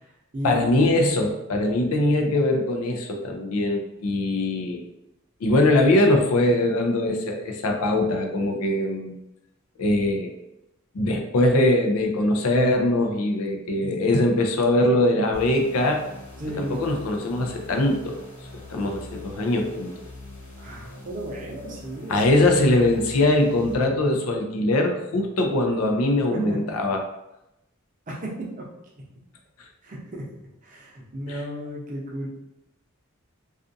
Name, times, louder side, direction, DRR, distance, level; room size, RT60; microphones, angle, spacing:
voice 1, 0.4-4.9 5.4-9.1 9.8-10.4 10.9-16.0 16.6-18.2 18.7-19.9 22.1-27.0 31.3-31.4, left 1 dB, 85° left, 3 dB, 0.4 m, -22 dB
sound 1, 15.3-23.8, left 2 dB, 30° left, 1.2 m, -42 dB
voice 2, 16.4-16.8 20.6-22.6 26.3-26.6 28.1-28.6 29.8-30.2 30.6-32.3, equal, 35° right, -3 dB, 0.6 m, -34 dB
2.4 x 2.4 x 2.5 m, 0.88 s
head